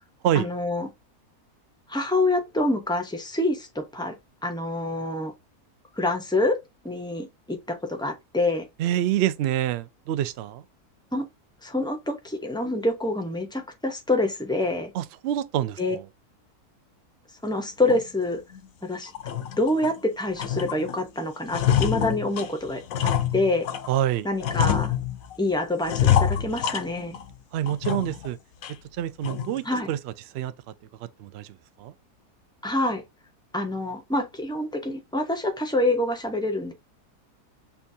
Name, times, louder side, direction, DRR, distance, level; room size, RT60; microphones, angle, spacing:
voice 1, 0.3-0.9 1.9-4.2 4.4-5.3 6.0-6.6 6.8-8.6 11.1-11.3 11.6-14.9 15.8-16.0 17.4-18.4 18.8-19.1 19.6-23.7 24.2-24.9 25.4-27.2 29.6-29.9 32.6-33.0 33.5-36.7, left 2 dB, 5° left, 0.3 m, -26 dB
voice 2, 8.8-10.6 14.9-16.1 23.9-24.3 27.5-28.4 28.9-30.5 31.0-31.9, right 11 dB, 80° right, 0.5 m, -27 dB
sound 1, 17.9-18.0 18.5-18.6 19.1-20.0 20.4-21.0 21.3-23.9 24.4-25.4 25.9-27.3 27.7-28.3 28.6-28.7 29.2-29.6, left 9 dB, 70° left, 1.0 m, -26 dB
6.9 x 2.3 x 2.7 m
omnidirectional pair, 1.6 m